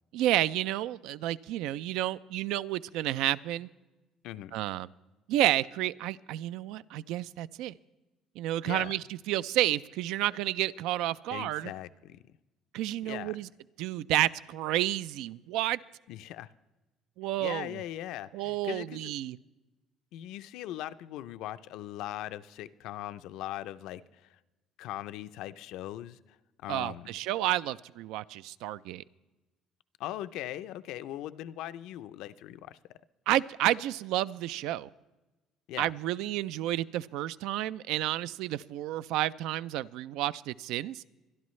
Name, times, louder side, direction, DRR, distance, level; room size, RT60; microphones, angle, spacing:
voice 1, 0.1-3.7 4.5-4.9 5.3-7.7 8.4-11.7 12.7-13.5 13.8-15.8 17.2-17.8 18.3-19.4 26.7-29.0 33.3-34.9 35.8-41.0, right 14 dB, 80° right, 17 dB, 0.3 m, -30 dB
voice 2, 4.2-4.6 8.6-8.9 11.3-12.4 13.0-13.3 16.1-16.5 17.4-19.2 20.1-24.4 24.8-27.1 30.0-32.8 35.7-35.9, left 13 dB, 70° left, 13 dB, 0.5 m, -40 dB
24.5 x 11.0 x 3.2 m, 1.1 s
cardioid pair, 155°, 0 cm